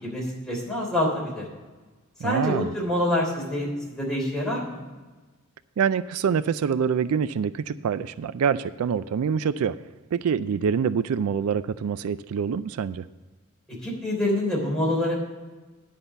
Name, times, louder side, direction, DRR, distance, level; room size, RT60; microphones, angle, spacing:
voice 1, 0.0-1.4 2.2-3.7 3.9-4.8 13.8-15.2, left 1 dB, 5° left, -4 dB, 3.4 m, -26 dB
voice 2, 2.2-2.7 5.8-9.8 10.1-13.1, right 7 dB, 75° right, 15 dB, 0.3 m, -25 dB
10.0 x 5.6 x 7.8 m, 1.3 s
head